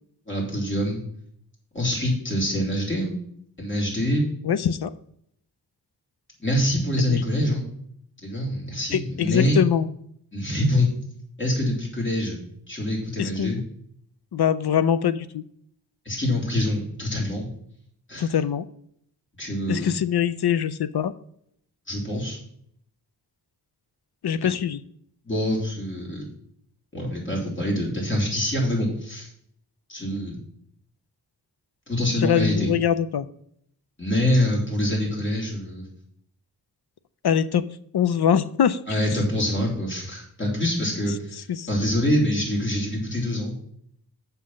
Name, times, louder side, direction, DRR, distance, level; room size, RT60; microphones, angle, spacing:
voice 1, 0.3-1.0 1.7-3.2 3.6-4.2 6.4-7.7 8.2-9.6 10.3-10.9 11.4-12.4 12.7-13.6 16.1-17.5 18.1-18.3 19.4-19.9 21.9-22.4 24.4-24.5 25.3-26.3 26.9-29.3 29.9-30.4 31.9-32.7 34.0-35.9 38.9-43.5, left 1 dB, 30° left, -3 dB, 3.5 m, -25 dB
voice 2, 4.4-4.9 7.0-7.2 8.9-9.9 13.2-13.6 14.3-15.4 18.2-18.7 19.7-21.1 24.2-24.8 32.2-33.3 37.2-37.6 37.9-38.8 41.5-41.7, left 8 dB, 75° left, 14 dB, 0.6 m, -23 dB
7.1 x 5.7 x 6.3 m, 0.68 s
wide cardioid pair, 100°, 39 cm